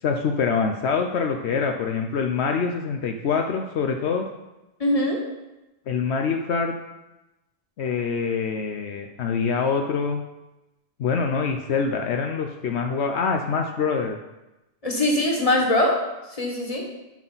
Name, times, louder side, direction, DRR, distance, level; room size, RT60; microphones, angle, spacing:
voice 1, 0.0-4.3 5.9-6.7 7.8-10.2 11.0-14.2, left 5 dB, 75° left, 4 dB, 1.0 m, -25 dB
voice 2, 4.8-5.2 14.8-16.0 16.4-16.8, left 1 dB, 30° left, -1 dB, 1.8 m, -22 dB
11.5 x 5.9 x 4.0 m, 1.0 s
omnidirectional pair, 1.1 m